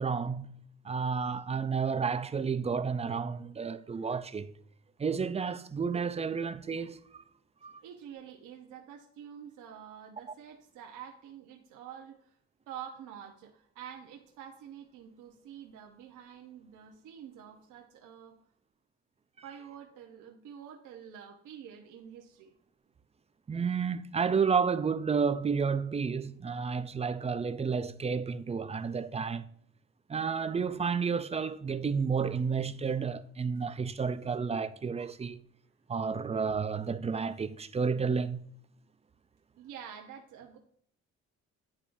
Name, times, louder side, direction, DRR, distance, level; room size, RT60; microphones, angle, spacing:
voice 1, 0.0-4.5 5.0-7.0 7.6-7.8 23.5-29.4 30.1-35.4 35.9-38.4, right 5 dB, 20° right, 0.4 m, -31 dB
voice 2, 7.8-12.3 12.7-18.4 19.4-22.5 39.6-40.6, right 8 dB, 85° right, 0.9 m, -48 dB
10.0 x 3.6 x 2.5 m
cardioid pair, 90°, 30 cm